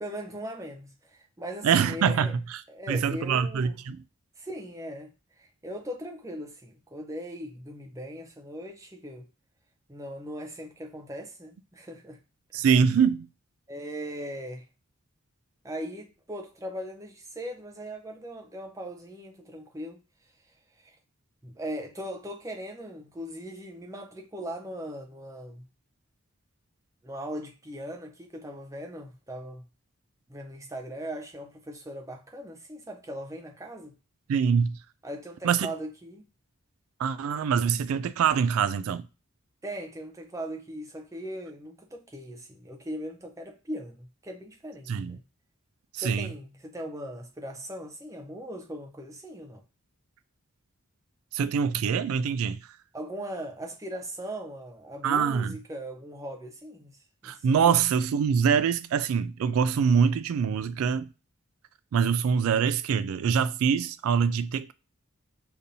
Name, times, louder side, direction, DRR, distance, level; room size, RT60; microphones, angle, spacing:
voice 1, 0.0-2.3 2.7-3.7 4.4-5.1 5.4-9.3 9.9-12.2 12.5-12.6 13.7-14.6 15.6-20.0 20.8-20.9 21.4-25.7 27.0-29.6 30.3-33.9 35.0-36.2 39.6-45.2 46.0-49.6 52.9-57.0 57.2-57.4 57.7-57.8, equal, 15° right, 0.5 m, -39 dB
voice 2, 1.6-2.6 2.9-4.0 12.5-13.3 34.3-34.8 35.4-35.7 37.0-39.1 44.9-45.2 45.9-46.3 51.3-52.6 55.0-55.5 57.2-61.1 61.9-64.7, right 6 dB, 80° right, 0.3 m, -24 dB
6.7 x 2.6 x 2.7 m
head